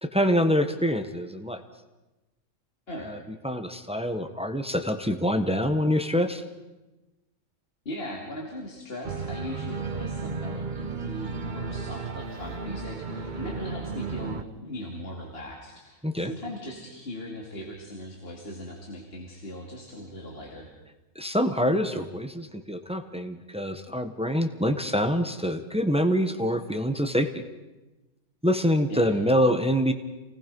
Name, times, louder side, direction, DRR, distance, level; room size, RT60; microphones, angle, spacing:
voice 1, 0.0-1.6 3.0-3.2 3.4-6.4 16.0-16.3 21.1-27.4 28.4-29.9, equal, 5° right, 7 dB, 1.2 m, -25 dB
voice 2, 7.8-20.7 28.9-29.1, left 1 dB, 50° left, -1 dB, 2.7 m, -39 dB
Organ, 9.0-14.4, right 4 dB, 40° right, 1.0 m, -34 dB
28.5 x 18.5 x 5.4 m, 1.1 s
omnidirectional pair, 1.3 m